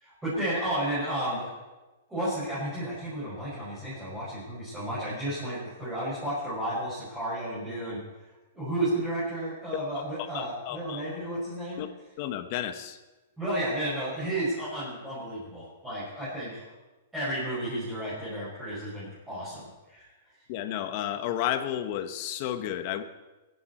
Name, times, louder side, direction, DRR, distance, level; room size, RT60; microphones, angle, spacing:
voice 1, 0.0-1.5 2.1-8.0 8.5-11.8 13.4-16.6 17.1-20.0, right 1 dB, 5° right, -12 dB, 6.0 m, -32 dB
voice 2, 10.3-11.0 11.8-11.9 12.2-13.0 20.5-23.0, left 11 dB, 40° left, 10 dB, 1.1 m, -32 dB
23.0 x 11.0 x 4.3 m, 1.1 s
hypercardioid pair, 160°, 0 cm